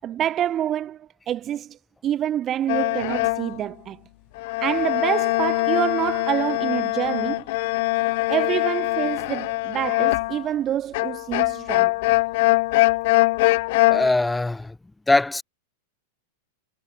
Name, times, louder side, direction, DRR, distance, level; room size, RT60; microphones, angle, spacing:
voice 1, 0.0-1.8 2.0-4.0 4.6-7.5 8.3-11.9, right 11 dB, 30° right, 5.8 m, -27 dB
sound 1, 2.7-3.6 4.4-10.5 10.9-14.1, left 21 dB, 60° left, 2.3 m, -22 dB
voice 2, 13.9-14.8 15.1-15.4, left 2 dB, 5° left, 6.2 m, -21 dB
hypercardioid pair, 125°, 0 cm